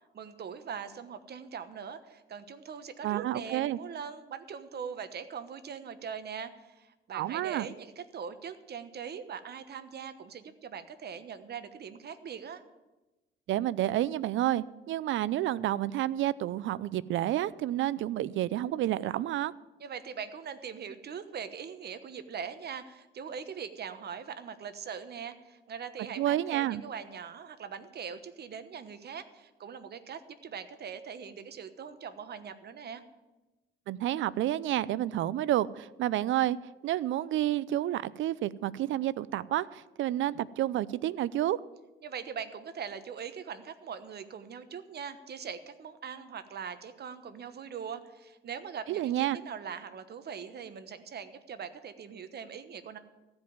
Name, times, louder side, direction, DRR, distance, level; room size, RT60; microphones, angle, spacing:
voice 1, 0.1-12.6 19.8-33.0 42.0-53.0, right 7 dB, 55° right, 1.2 m, -41 dB
voice 2, 3.0-3.8 7.1-7.7 13.5-19.5 26.2-26.8 33.9-36.6 36.8-41.6 48.9-49.4, right 13 dB, 75° right, 0.5 m, -30 dB
15.0 x 5.3 x 9.3 m
cardioid pair, 90°, 20 cm